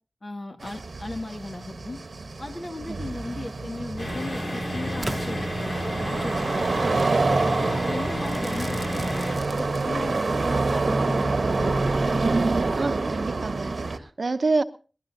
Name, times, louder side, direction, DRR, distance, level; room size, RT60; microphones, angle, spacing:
voice 1, 0.2-2.0 2.4-7.0 7.6-10.2 10.5-12.1, left 2 dB, 50° left, 3 dB, 2.2 m, -37 dB
sound 1, 0.6-14.0, right 3 dB, 90° right, 1.2 m, -27 dB
sound 2, 4.0-9.4, equal, 85° left, 6.7 m, -31 dB
Crackle / Fireworks, 5.0-6.2 7.0-7.2 8.2-10.2, right 2 dB, 40° right, 0.9 m, -39 dB
voice 2, 12.8-14.6, right 3 dB, 70° right, 10 dB, 0.8 m, -27 dB
22.0 x 19.0 x 2.8 m, 0.37 s
wide cardioid pair, 75°, 0 cm